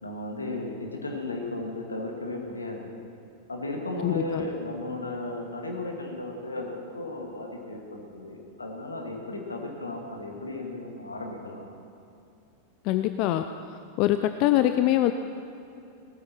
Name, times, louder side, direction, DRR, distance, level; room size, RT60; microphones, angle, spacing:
voice 1, 0.0-3.0 3.5-11.6, left 2 dB, 80° left, 2 dB, 2.0 m, -35 dB
voice 2, 4.0-4.4 12.9-13.5 14.0-15.1, left 13 dB, 45° left, 9 dB, 0.5 m, -23 dB
18.5 x 13.5 x 4.4 m, 2.7 s
figure-of-eight pair, 90°, 0 cm